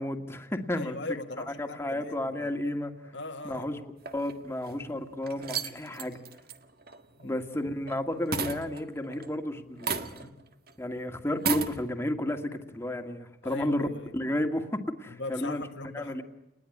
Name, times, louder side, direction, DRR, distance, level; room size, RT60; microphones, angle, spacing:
voice 1, 0.0-1.0 1.5-2.9 3.4-3.8 4.1-6.2 7.2-10.4 10.8-13.9 14.1-15.6 15.9-16.2, left 1 dB, 15° left, 1.9 m, -32 dB
voice 2, 0.8-2.5 3.1-3.8 7.2-7.4 13.4-14.1 15.1-16.2, left 2 dB, 80° left, 1.8 m, -40 dB
sound 1, 4.0-4.7 5.2-8.0 8.3-9.4 9.8-10.4 10.7-10.8 11.3-11.8, right 6 dB, 55° right, 1.6 m, -34 dB
29.5 x 20.0 x 9.9 m
head